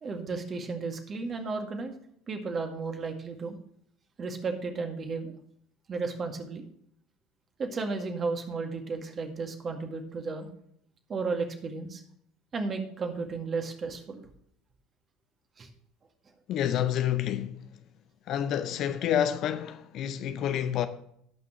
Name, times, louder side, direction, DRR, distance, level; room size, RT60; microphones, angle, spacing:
voice 1, 0.0-1.9 2.3-3.6 4.2-5.3 5.9-6.6 7.6-10.5 11.1-12.0 12.5-14.2 15.6-15.7, right 4 dB, 35° right, 2.1 m, -33 dB
voice 2, 16.5-17.6 18.3-20.9, left 10 dB, 50° left, 0.7 m, -28 dB
17.5 x 6.1 x 3.1 m
hypercardioid pair, 65°, 0 cm